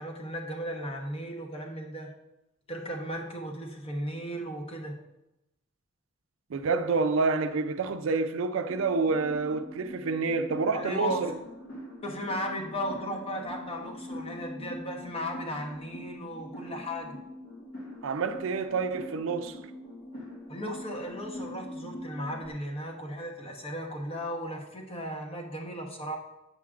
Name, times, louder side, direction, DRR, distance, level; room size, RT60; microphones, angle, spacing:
voice 1, 0.0-2.1 2.7-5.0 10.7-11.3 12.0-17.2 20.5-26.2, equal, 30° left, 1.0 m, -36 dB
voice 2, 6.5-11.3 18.0-19.6, right 4 dB, 70° right, 0.4 m, -28 dB
sound 1, 8.7-22.5, left 1 dB, 75° left, 2.0 m, -43 dB
8.2 x 7.2 x 2.5 m
head